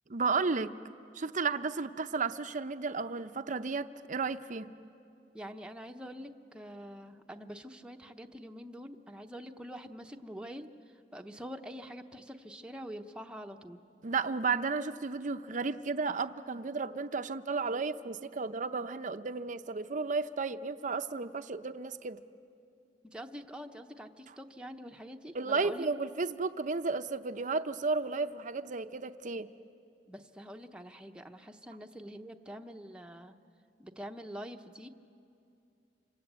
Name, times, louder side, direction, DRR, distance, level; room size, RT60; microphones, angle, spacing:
voice 1, 0.1-0.7 1.1-4.7 14.0-22.2 25.3-29.5, right 4 dB, 45° right, 10 dB, 0.7 m, -33 dB
voice 2, 5.3-10.7 11.1-13.8 23.0-25.9 30.1-33.3 33.8-34.9, equal, 5° right, 4 dB, 0.8 m, -45 dB
27.5 x 26.0 x 8.2 m, 2.6 s
head